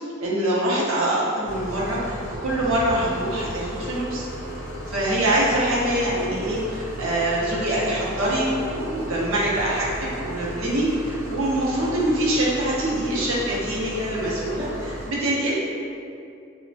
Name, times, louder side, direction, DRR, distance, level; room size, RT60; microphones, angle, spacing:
voice 1, 0.2-4.3 4.9-15.6, right 1 dB, 90° right, -6 dB, 0.6 m, -24 dB
sound 1, 1.4-15.1, right 1 dB, 55° left, 0.8 m, -34 dB
2.9 x 2.0 x 2.6 m, 2.4 s
head